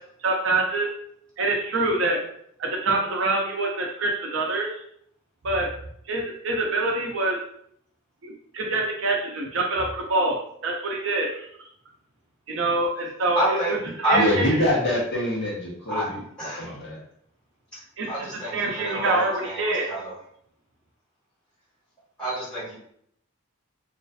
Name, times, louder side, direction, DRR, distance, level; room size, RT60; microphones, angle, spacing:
voice 1, 0.2-0.9 1.4-2.2 2.6-4.7 5.4-5.7 6.1-7.4 8.2-10.4 10.6-11.7 12.5-13.8 14.0-14.6 18.0-19.9, right 2 dB, 60° right, 0 dB, 0.5 m, -25 dB
voice 2, 13.3-13.7 14.0-14.2 15.9-16.1 16.4-16.6 18.1-20.1 22.2-22.7, right 1 dB, 5° left, -12 dB, 1.4 m, -28 dB
voice 3, 14.1-16.2 16.6-17.0, left 1 dB, 50° left, -5 dB, 0.8 m, -25 dB
2.4 x 2.4 x 2.2 m, 0.67 s
head